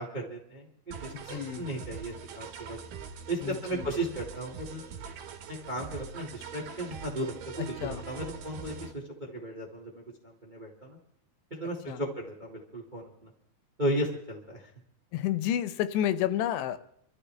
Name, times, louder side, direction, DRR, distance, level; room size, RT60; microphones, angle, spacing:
voice 1, 0.0-2.8 3.3-4.9 5.7-11.0 11.5-13.3 13.8-14.7, right 1 dB, 35° right, -1 dB, 0.7 m, -35 dB
sound 1, 0.9-8.9, right 7 dB, 70° right, 3.0 m, -43 dB
voice 2, 1.1-1.7 3.4-3.9 7.6-8.1 11.9-12.0 15.1-16.8, left 11 dB, 85° left, 13 dB, 2.8 m, -31 dB
26.0 x 13.5 x 3.3 m, 0.73 s
omnidirectional pair, 4.8 m